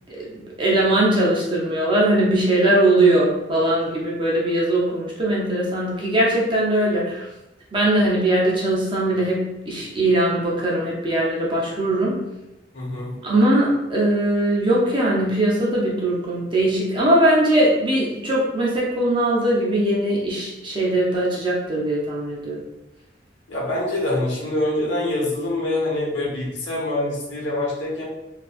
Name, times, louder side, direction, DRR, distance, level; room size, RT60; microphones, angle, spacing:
voice 1, 0.6-7.3 7.7-12.2 13.2-22.6, right 1 dB, 25° right, -5 dB, 0.6 m, -20 dB
voice 2, 12.7-13.1 23.5-28.0, left 1 dB, 75° left, -4 dB, 0.9 m, -25 dB
2.8 x 2.5 x 2.4 m, 0.94 s
head